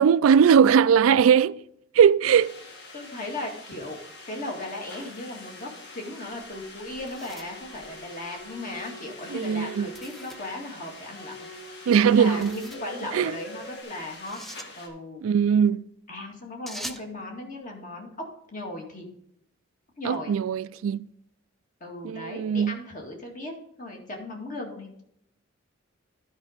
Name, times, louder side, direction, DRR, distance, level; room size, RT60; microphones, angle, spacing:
voice 1, 0.0-1.6 2.0-2.6 9.3-9.9 11.9-12.6 13.1-13.3 15.2-15.8 20.1-21.0 22.0-22.8, right 7 dB, 85° right, 0.3 m, -20 dB
sound 1, 2.3-14.9, left 3 dB, 55° left, 1.8 m, -46 dB
voice 2, 2.9-4.0 4.3-11.3 12.1-14.4 14.8-15.2 16.1-18.1 18.5-19.1 20.0-20.4 21.8-25.0, left 1 dB, 40° left, 2.1 m, -37 dB
sound 2, 6.3-8.5 9.9-10.5 12.2-12.9 14.1-14.7 16.7-17.1, equal, ahead, 0.5 m, -43 dB
sound 3, 6.8-13.8, right 1 dB, 85° left, 2.5 m, -44 dB
11.0 x 5.3 x 5.0 m
head